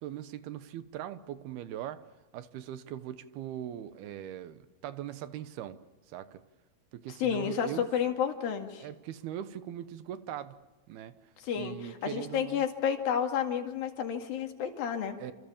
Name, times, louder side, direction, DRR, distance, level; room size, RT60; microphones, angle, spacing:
voice 1, 0.0-2.1 2.3-5.8 6.1-6.4 6.9-7.9 8.8-10.6 10.9-11.1 11.5-12.6 15.2-15.3, right 11 dB, 85° right, 12 dB, 3.1 m, -40 dB
voice 2, 7.2-8.9 11.4-11.7 12.0-15.2, left 8 dB, 70° left, 4 dB, 3.9 m, -31 dB
28.5 x 27.5 x 7.2 m, 1.1 s
omnidirectional pair, 4.4 m